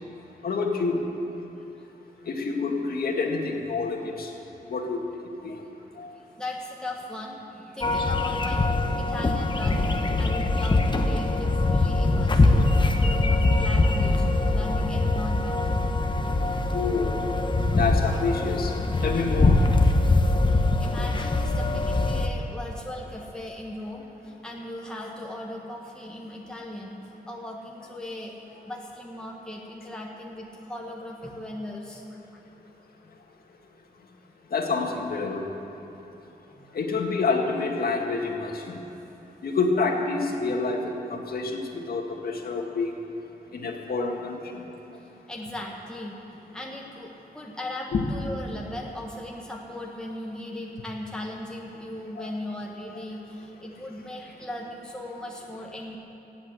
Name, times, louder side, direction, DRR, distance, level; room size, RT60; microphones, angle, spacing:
voice 1, 0.4-1.0 2.3-4.3 4.7-5.0 5.4-5.6 6.0-6.1 16.7-17.1 17.7-18.7 19.0-19.6 34.5-35.4 36.7-38.8 39.4-40.8 41.1-41.6 41.9-42.9 43.5-44.4 47.9-48.0 52.2-52.3, left 4 dB, 70° left, 1 dB, 2.0 m, -27 dB
voice 2, 6.4-12.7 13.0-14.2 14.5-15.6 20.5-27.0 27.3-28.3 28.6-32.4 35.8-35.9 36.5-36.7 44.5-44.7 45.0-56.0, left 1 dB, 5° left, -2 dB, 1.6 m, -38 dB
sound 1, 7.8-22.3, left 2 dB, 30° left, 1.1 m, -23 dB
16.5 x 8.4 x 8.3 m, 3.0 s
cardioid pair, 90°, 16 cm